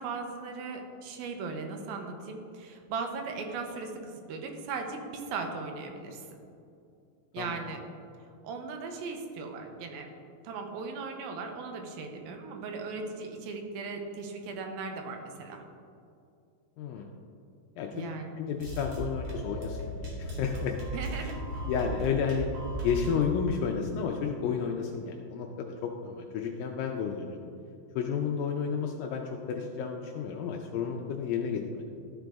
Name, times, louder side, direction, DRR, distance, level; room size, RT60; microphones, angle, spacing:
voice 1, 0.0-6.4 7.3-7.8 8.4-10.1 10.4-15.6 17.9-18.3 20.9-21.4, right 4 dB, 80° right, 4 dB, 2.6 m, -38 dB
voice 2, 16.8-17.1 17.8-18.1 18.4-20.8 21.2-21.3 21.7-22.5 22.8-27.4 28.0-31.8, left 6 dB, 80° left, 2 dB, 2.2 m, -32 dB
sound 1, 18.6-23.4, right 1 dB, 50° right, 2.1 m, -36 dB
13.5 x 5.1 x 3.5 m, 2.5 s
omnidirectional pair, 4.2 m